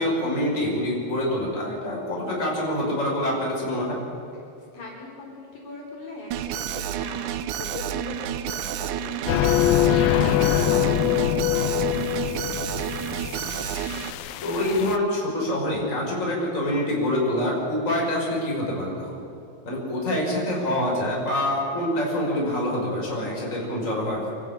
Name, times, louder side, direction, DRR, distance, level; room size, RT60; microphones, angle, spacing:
voice 1, 0.0-4.0 10.5-10.8 14.4-19.2 19.6-24.3, left 1 dB, 20° left, -3 dB, 5.3 m, -26 dB
voice 2, 4.7-13.2, left 2 dB, 65° left, -2 dB, 5.6 m, -40 dB
Alarm, 6.3-14.1, right 10 dB, 70° right, 2.1 m, -30 dB
sound 1, 9.3-15.0, left 12 dB, 90° left, 2.6 m, -24 dB
26.0 x 14.0 x 8.7 m, 2.8 s
omnidirectional pair, 4.1 m